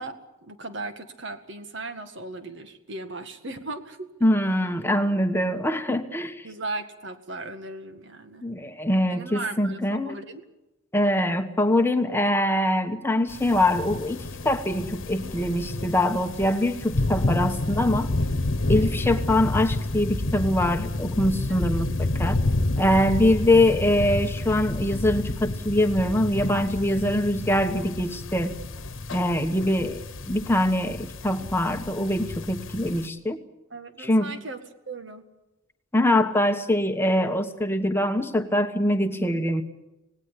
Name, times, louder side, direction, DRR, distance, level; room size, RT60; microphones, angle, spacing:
voice 1, 0.0-4.1 6.4-8.4 9.1-10.4 21.5-21.8 33.7-34.6 34.9-35.2 39.1-39.5, right 2 dB, 60° right, 8 dB, 2.0 m, -37 dB
voice 2, 4.2-6.5 8.4-10.2 10.9-18.1 18.7-22.4 22.8-28.5 29.1-30.0 30.3-33.4 34.0-34.3 35.9-39.6, left 1 dB, 10° left, 6 dB, 1.1 m, -23 dB
sound 1, 13.3-33.1, left 2 dB, 70° left, 1.3 m, -29 dB
26.5 x 19.0 x 8.4 m, 0.96 s
head